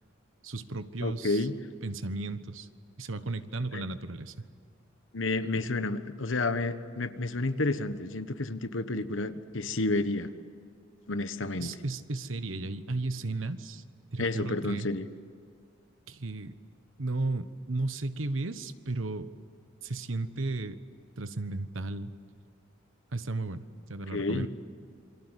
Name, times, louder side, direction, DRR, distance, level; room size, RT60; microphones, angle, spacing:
voice 1, 0.4-1.5 1.8-2.7 3.0-4.3 11.6-13.8 14.1-14.9 16.1-16.6 17.0-19.3 19.8-20.8 21.2-22.1 23.1-24.5, right 2 dB, 80° right, 12 dB, 1.2 m, -34 dB
voice 2, 1.0-1.6 3.7-3.8 5.1-10.3 11.1-11.8 14.2-15.1 24.1-24.5, left 2 dB, 70° left, 10 dB, 1.3 m, -30 dB
28.0 x 24.0 x 8.2 m, 2.2 s
head